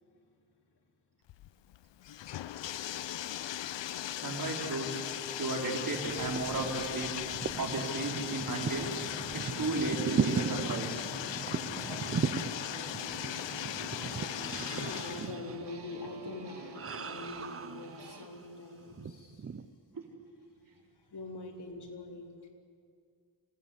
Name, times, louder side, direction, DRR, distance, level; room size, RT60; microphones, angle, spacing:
Bathtub (filling or washing), 1.3-15.3, left 12 dB, 80° left, 0.7 m, -38 dB
voice 1, 4.2-7.1 7.6-11.1 19.9-20.0, right 3 dB, 45° right, 0 dB, 4.0 m, -35 dB
sound 1, 6.0-18.5 18.9-19.7, right 6 dB, 30° right, 0.7 m, -37 dB
sound 2, 11.7-18.3, right 3 dB, 65° right, 2.5 m, -48 dB
voice 2, 14.6-19.5 20.7-22.3, left 3 dB, 60° left, 1 dB, 4.0 m, -44 dB
26.0 x 18.0 x 8.4 m, 2.2 s
wide cardioid pair, 115°, 44 cm